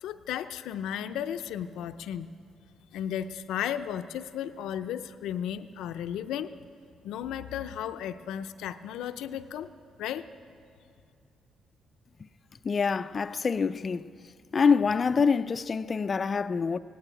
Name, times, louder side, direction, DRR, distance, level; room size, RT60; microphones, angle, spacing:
voice 1, 0.0-2.3 2.9-6.5 7.0-9.7 10.0-10.3, left 10 dB, 85° left, 0.7 m, -34 dB
voice 2, 12.6-14.1 14.5-16.8, left 5 dB, 35° left, 0.5 m, -25 dB
17.5 x 16.5 x 9.0 m
cardioid pair, 100°, 0 cm